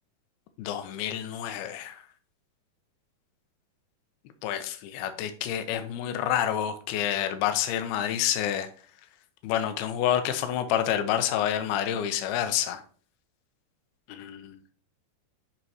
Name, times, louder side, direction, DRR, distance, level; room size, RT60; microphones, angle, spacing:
voice 1, 0.6-2.0 4.4-8.7 9.4-12.8 14.1-14.6, left 10 dB, 75° left, 8 dB, 2.5 m, -28 dB
7.9 x 5.6 x 2.9 m, 0.43 s
omnidirectional pair, 4.9 m